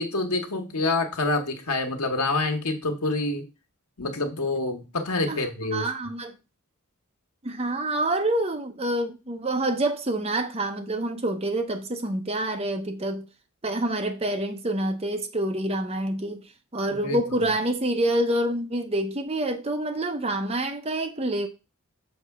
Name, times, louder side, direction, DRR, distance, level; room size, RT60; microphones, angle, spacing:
voice 1, 0.0-3.5 4.0-5.9 16.9-17.2, left 2 dB, 90° left, 1.2 m, -27 dB
voice 2, 5.3-6.3 7.4-13.2 13.6-16.5 16.7-21.5, right 1 dB, 25° right, 0.8 m, -27 dB
6.5 x 3.4 x 5.9 m
head